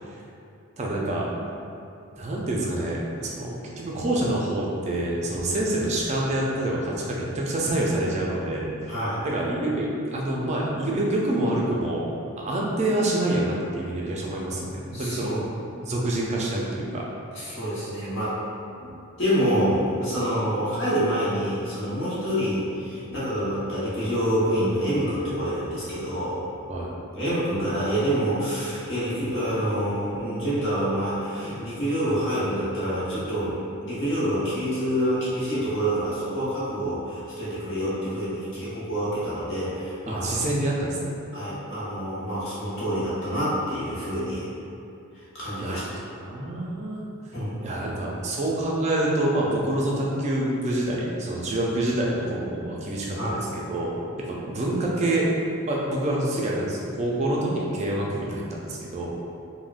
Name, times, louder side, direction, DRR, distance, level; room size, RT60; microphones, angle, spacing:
voice 1, 0.8-1.3 2.2-8.9 9.2-12.1 12.4-17.0 26.7-26.9 40.1-41.0 45.6-47.0 47.6-55.3 55.7-59.2, right 1 dB, 30° right, -3 dB, 0.4 m, -27 dB
voice 2, 8.9-9.2 14.9-15.4 17.3-18.3 18.8-18.9 19.2-26.4 27.1-40.2 41.3-44.4 45.3-45.8 47.3-47.6 53.2-53.3, equal, 55° left, -11 dB, 1.0 m, -27 dB
3.4 x 2.1 x 2.4 m, 2.6 s
head